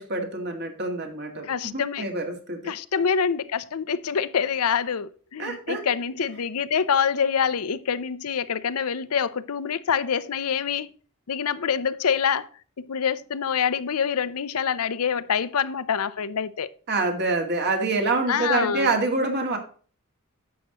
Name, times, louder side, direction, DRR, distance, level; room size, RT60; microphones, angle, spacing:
voice 1, 0.0-1.5 1.7-2.7 5.4-5.8 16.9-19.6, right 3 dB, 50° right, 2.1 m, -26 dB
voice 2, 1.5-2.0 2.7-10.9 11.3-12.5 12.8-16.7 18.3-18.9, left 7 dB, 75° left, 0.6 m, -26 dB
11.0 x 7.9 x 2.9 m
head